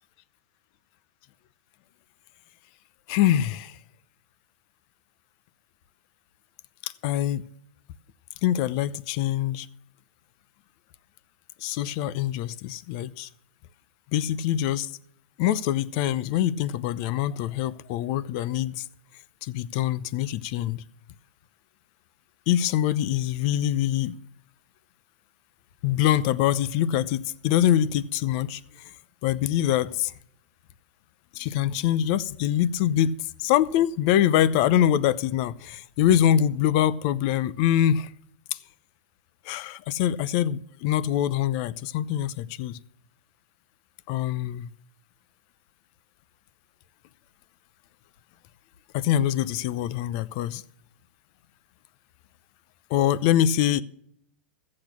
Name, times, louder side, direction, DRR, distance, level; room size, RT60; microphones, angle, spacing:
voice 1, 3.1-3.8 6.8-7.4 8.4-9.7 11.6-13.3 14.1-14.9 15.4-18.8 19.4-20.8 22.5-24.2 25.8-28.6 29.2-30.1 31.3-33.1 33.4-38.1 39.5-42.8 44.1-44.7 48.9-50.6 52.9-53.8, left 11 dB, 50° left, 0.7 m, -24 dB
14.5 x 8.7 x 6.0 m
hypercardioid pair, 130°, 6 cm